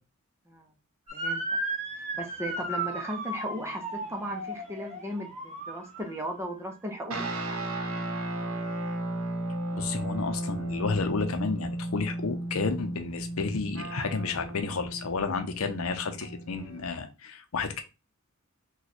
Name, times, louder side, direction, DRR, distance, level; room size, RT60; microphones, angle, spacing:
voice 1, 1.1-1.6 2.1-7.2, equal, 10° right, 0.6 m, -36 dB
Motor vehicle (road) / Siren, 1.1-6.3, right 2 dB, 30° right, 0.9 m, -35 dB
sound 1, 7.1-16.8, right 1 dB, 65° right, 0.8 m, -34 dB
voice 2, 9.7-17.8, left 4 dB, 75° left, 0.6 m, -31 dB
3.1 x 2.3 x 4.0 m
head